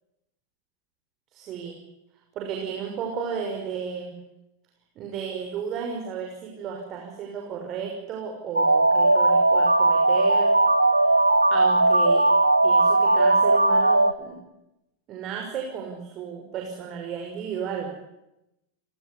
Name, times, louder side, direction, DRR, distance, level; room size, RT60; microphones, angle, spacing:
voice 1, 1.3-1.7 2.3-4.2 5.0-10.5 11.5-12.3 12.6-14.4 15.1-17.9, right 7 dB, 35° right, 1 dB, 6.2 m, -33 dB
sound 1, 8.6-14.1, right 2 dB, 85° right, 1.5 m, -18 dB
29.5 x 19.0 x 10.0 m, 0.89 s
figure-of-eight pair, 90°, 0 cm